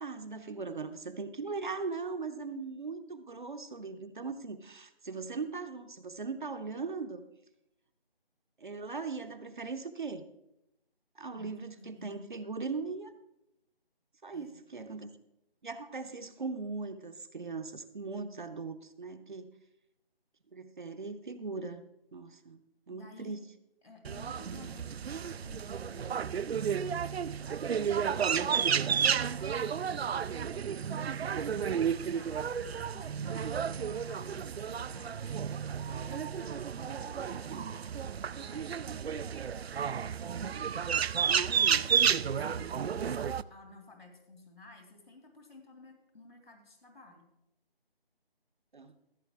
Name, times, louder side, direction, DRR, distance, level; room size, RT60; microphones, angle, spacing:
voice 1, 0.0-7.2 8.6-10.2 11.2-13.1 14.2-15.1 15.6-19.5 20.5-21.8 22.1-23.4 40.4-40.7 41.2-41.8 48.7-48.9, right 4 dB, 50° right, 9 dB, 0.8 m, -39 dB
voice 2, 11.3-12.3 14.3-14.6 22.9-23.4 23.8-26.2 26.7-30.9 31.3-35.3 35.6-38.1 38.4-39.0 41.3-41.7 42.2-47.3, left 3 dB, 70° left, 3 dB, 2.6 m, -54 dB
sound 1, 24.0-43.4, right 7 dB, 90° right, 0.5 m, -32 dB
15.0 x 7.7 x 3.5 m, 0.86 s
figure-of-eight pair, 170°, 30 cm